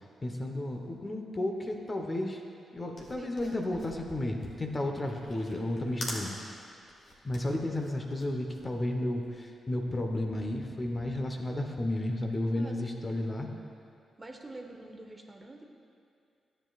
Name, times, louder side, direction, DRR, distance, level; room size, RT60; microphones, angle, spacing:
voice 1, 0.2-2.4 2.7-6.6 7.2-13.5, left 1 dB, 35° left, 3 dB, 1.0 m, -33 dB
sound 1, 3.0-9.4, left 1 dB, 55° left, 1.8 m, -44 dB
voice 2, 3.1-3.9 12.5-12.8 14.2-15.6, right 2 dB, 30° right, 2 dB, 1.0 m, -47 dB
12.5 x 7.9 x 2.4 m, 2.4 s
hypercardioid pair, 40°, 0 cm